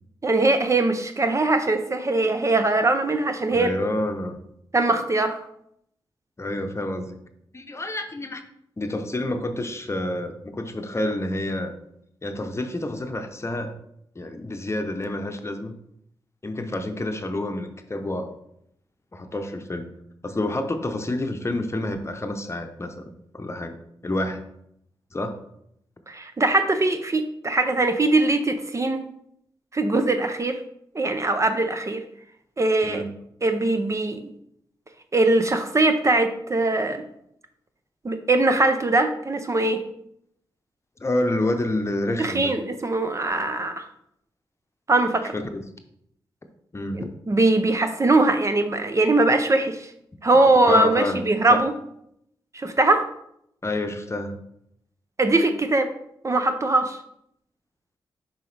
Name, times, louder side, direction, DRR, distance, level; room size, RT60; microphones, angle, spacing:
voice 1, 0.2-3.8 4.7-5.4 26.1-29.1 29.7-30.6 30.9-32.0 32.6-33.0 33.4-34.3 35.1-37.0 38.0-39.8 42.2-43.9 44.9-45.3 46.9-49.9 50.2-51.7 52.5-53.0 55.2-55.9 56.2-57.0, right 2 dB, 35° right, 8 dB, 0.6 m, -21 dB
voice 2, 3.5-4.4 6.4-7.2 7.5-8.4 8.8-11.7 12.2-13.7 14.1-15.7 16.4-18.3 19.1-19.9 20.2-23.0 23.3-23.8 24.0-24.4 25.1-25.3 32.8-33.1 41.0-42.5 45.3-45.6 46.7-47.1 50.6-51.2 51.5-51.6 53.6-54.4, left 1 dB, 30° left, 6 dB, 0.8 m, -28 dB
6.9 x 4.8 x 3.3 m, 0.75 s
cardioid pair, 55°, 9 cm